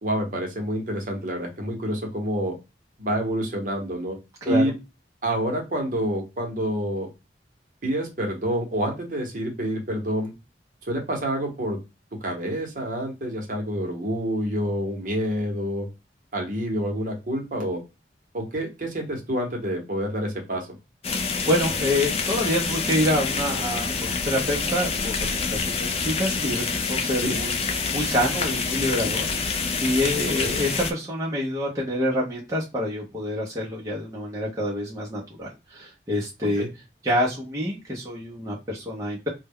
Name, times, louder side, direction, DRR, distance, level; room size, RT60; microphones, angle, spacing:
voice 1, 0.0-2.5 3.0-4.2 4.5-4.7 5.2-7.1 7.8-10.3 10.8-11.8 12.2-15.9 16.3-17.8 18.3-20.7 27.2-27.4 30.4-30.6 36.6-36.7, right 1 dB, 45° right, 2 dB, 0.8 m, -27 dB
voice 2, 4.4-4.7 21.1-27.6 27.9-36.7 37.0-39.3, left 1 dB, 20° right, -5 dB, 0.6 m, -27 dB
sound 1, 21.0-30.9, left 4 dB, 35° left, 0.3 m, -27 dB
2.2 x 2.1 x 3.5 m, 0.26 s
head